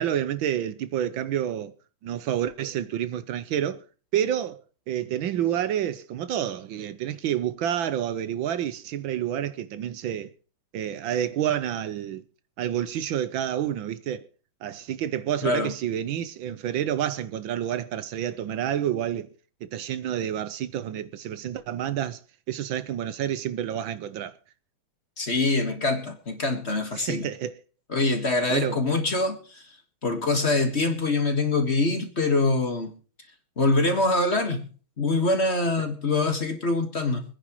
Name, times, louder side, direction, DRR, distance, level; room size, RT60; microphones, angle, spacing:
voice 1, 0.0-1.7 2.0-3.8 4.1-10.3 10.7-12.2 12.6-14.3 14.6-19.3 19.6-22.2 22.5-24.3 26.9-27.5 28.5-28.8, right 10 dB, 70° right, 1.5 m, -29 dB
voice 2, 15.4-15.7 25.2-27.3 27.9-29.6 30.0-32.9 33.6-34.7 35.0-37.2, left 2 dB, 35° left, 1.7 m, -24 dB
25.5 x 10.0 x 3.0 m
omnidirectional pair, 2.3 m